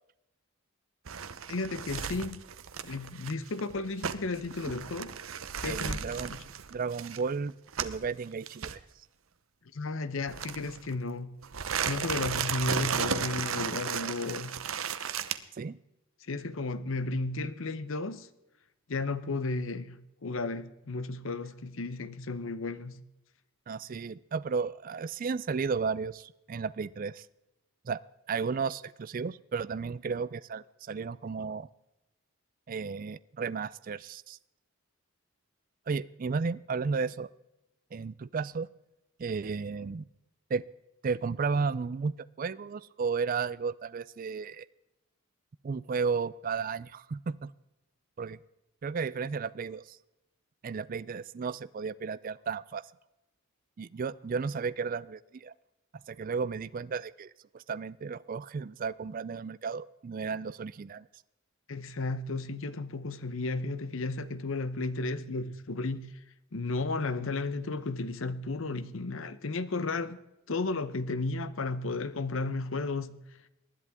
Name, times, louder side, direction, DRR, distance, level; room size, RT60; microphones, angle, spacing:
sound 1, 1.1-8.1 8.5-8.7 10.3-10.9 11.4-15.4, right 7 dB, 75° right, 0.8 m, -35 dB
voice 1, 1.5-2.4 2.8-5.1 5.6-6.0 6.3-6.4 9.7-11.4 11.8-14.6 16.3-18.3 18.9-23.0 61.7-66.1 66.5-70.2 70.5-73.2, left 3 dB, 70° left, 0.8 m, -33 dB
voice 2, 5.6-6.3 6.7-8.8 15.6-15.8 23.7-27.3 27.8-28.0 28.3-31.7 32.7-34.4 35.9-37.3 37.9-38.7 39.2-40.1 40.5-40.6 41.0-42.1 42.4-44.7 45.6-47.5 48.2-48.4 48.8-50.0 50.6-52.8 53.8-55.5 56.1-61.1, right 5 dB, 40° right, 0.3 m, -33 dB
19.5 x 11.0 x 3.6 m
head